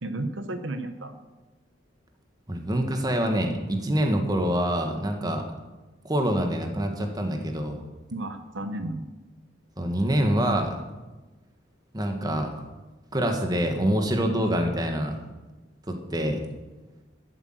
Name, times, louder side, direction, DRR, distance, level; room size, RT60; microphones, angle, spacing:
voice 1, 0.0-1.1 8.1-9.0, right 1 dB, 70° right, 8 dB, 1.0 m, -33 dB
voice 2, 2.5-5.4 6.0-7.8 9.8-10.8 11.9-12.6 13.1-15.2 15.9-16.4, equal, 20° right, 4 dB, 1.6 m, -26 dB
13.0 x 8.3 x 7.8 m, 1.2 s
head